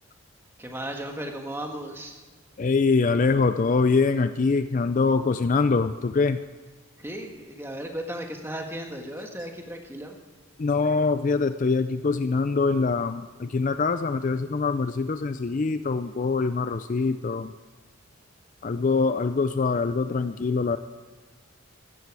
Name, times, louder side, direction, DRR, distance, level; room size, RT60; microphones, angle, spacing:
voice 1, 0.6-2.2 7.0-10.2, right 1 dB, 10° right, 3 dB, 1.5 m, -35 dB
voice 2, 2.6-6.4 10.6-17.5 18.6-20.8, left 4 dB, 35° left, 11 dB, 0.4 m, -24 dB
16.0 x 12.5 x 4.8 m, 1.4 s
head